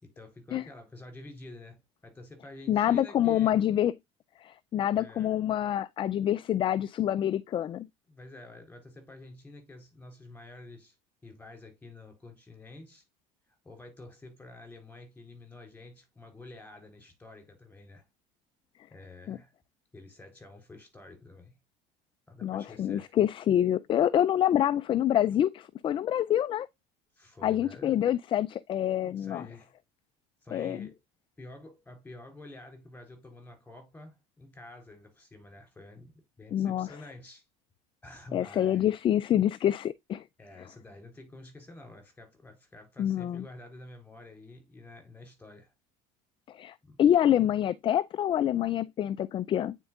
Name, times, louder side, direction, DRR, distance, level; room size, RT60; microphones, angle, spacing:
voice 1, 0.0-3.6 4.9-5.3 8.1-10.9 11.2-13.0 13.6-18.1 18.9-19.5 19.9-21.6 22.3-23.1 27.1-28.0 29.0-29.7 30.4-31.0 31.4-37.4 38.0-38.9 40.4-45.7 46.8-47.0, left 2 dB, 10° left, 3.9 m, -49 dB
voice 2, 2.7-3.9 4.4-7.9 19.3-19.4 22.4-26.7 27.4-29.5 30.5-30.9 36.5-36.9 38.3-40.2 43.0-43.4 46.5-49.8, left 11 dB, 30° left, 0.3 m, -26 dB
9.4 x 4.5 x 2.3 m
supercardioid pair, 105°, 16 cm